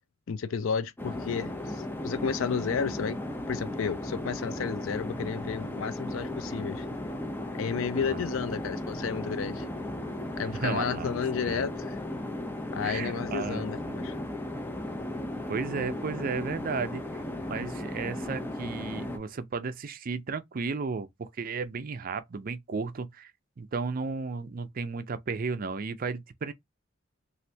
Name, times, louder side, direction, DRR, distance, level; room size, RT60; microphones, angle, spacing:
voice 1, 0.3-3.2 3.5-6.9 7.5-9.7 10.4-12.0 12.7-14.2, left 6 dB, 80° left, 0.4 m, -32 dB
sound 1, 1.0-19.2, left 1 dB, 10° left, 0.5 m, -36 dB
voice 2, 10.5-11.1 11.4-11.7 12.8-14.0 15.5-23.3 23.6-26.5, right 4 dB, 45° right, 0.5 m, -34 dB
3.2 x 2.5 x 2.7 m
head